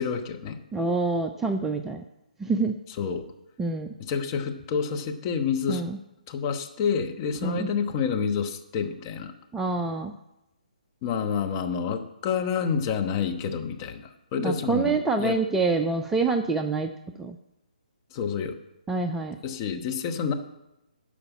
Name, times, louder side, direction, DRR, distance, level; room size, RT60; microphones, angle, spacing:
voice 1, 0.0-0.6 3.0-3.3 4.0-5.8 6.3-9.3 11.0-15.4 18.1-18.6 19.4-20.3, left 6 dB, 30° left, 4 dB, 1.0 m, -28 dB
voice 2, 0.7-2.0 2.4-2.8 3.6-3.9 5.7-6.0 7.4-7.7 9.5-10.1 14.4-16.9 17.2-17.4 18.9-19.4, right 3 dB, 5° right, 6 dB, 0.4 m, -26 dB
12.5 x 5.0 x 8.3 m, 0.91 s
figure-of-eight pair, 135°, 5 cm